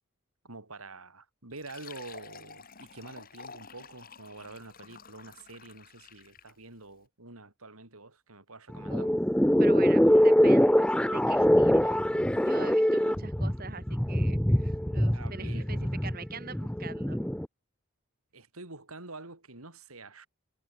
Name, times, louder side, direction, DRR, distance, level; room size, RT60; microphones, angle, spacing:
voice 1, 0.4-9.1 12.3-12.4 15.1-15.8 18.3-20.3, right 3 dB, 85° right, 4.8 m, -47 dB
Fill (with liquid), 1.5-6.6, left 5 dB, 40° left, 3.3 m, -50 dB
sound 1, 8.7-17.5, equal, 5° left, 0.9 m, -24 dB
voice 2, 9.6-12.0 12.4-17.2, right 4 dB, 45° right, 3.1 m, -44 dB
head